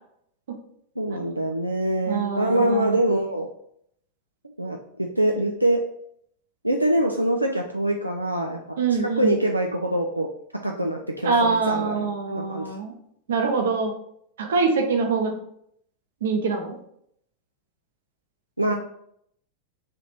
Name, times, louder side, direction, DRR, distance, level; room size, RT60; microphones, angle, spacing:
voice 1, 1.0-3.5 4.6-5.8 6.6-10.3 10.6-12.7 18.6-18.7, right 1 dB, 85° right, 1 dB, 0.3 m, -24 dB
voice 2, 2.1-3.0 8.8-9.4 11.2-12.9 13.3-13.9 14.4-15.3 16.2-16.8, right 4 dB, 60° right, 3 dB, 0.7 m, -24 dB
3.3 x 2.9 x 4.3 m, 0.71 s
figure-of-eight pair, 90°, 0 cm